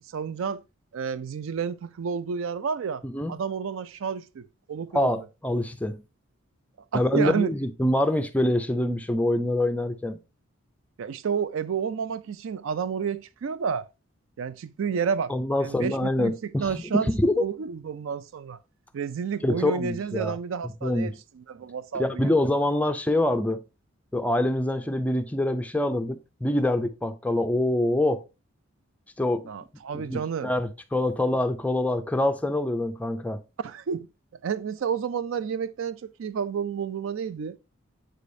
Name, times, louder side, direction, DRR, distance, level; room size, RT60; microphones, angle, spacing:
voice 1, 0.1-0.6 0.9-3.0 3.3-5.1 6.9-7.5 11.0-13.9 14.4-15.3 15.6-18.6 18.9-22.3 29.5-30.5 33.6-34.1 34.4-37.6, right 6 dB, 70° right, 0.4 m, -30 dB
voice 2, 3.0-3.3 4.9-6.0 6.9-10.2 15.3-17.4 19.4-20.4 20.6-21.1 21.9-23.6 24.1-28.2 29.2-29.5 29.9-33.4, left 1 dB, 5° left, 0.3 m, -25 dB
7.5 x 5.0 x 2.6 m
head